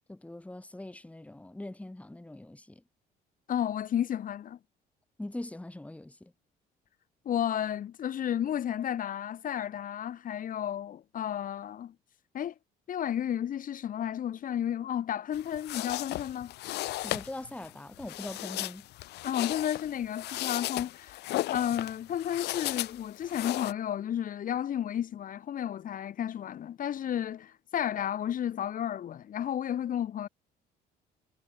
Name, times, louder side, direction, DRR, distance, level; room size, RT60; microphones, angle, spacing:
voice 1, 0.1-2.8 5.2-6.3 17.0-18.9, left 1 dB, 10° left, 3.7 m, -42 dB
voice 2, 3.5-4.6 7.2-11.9 12.3-12.5 12.9-16.5 19.2-21.2 21.5-30.3, left 10 dB, 55° left, 3.1 m, -32 dB
sound 1, 15.3-23.7, left 17 dB, 80° left, 1.6 m, -36 dB
cardioid pair, 110°, 17 cm